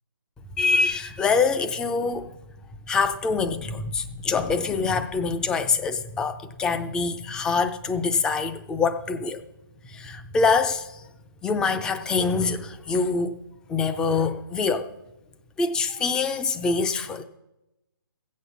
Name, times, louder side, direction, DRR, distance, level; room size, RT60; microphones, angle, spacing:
voice 1, 0.6-2.3 2.9-9.4 9.9-11.0 11.4-13.3 13.7-14.9 15.6-17.2, left 4 dB, 5° left, 0.5 m, -25 dB
15.0 x 8.4 x 6.9 m
hypercardioid pair, 160°, 12 cm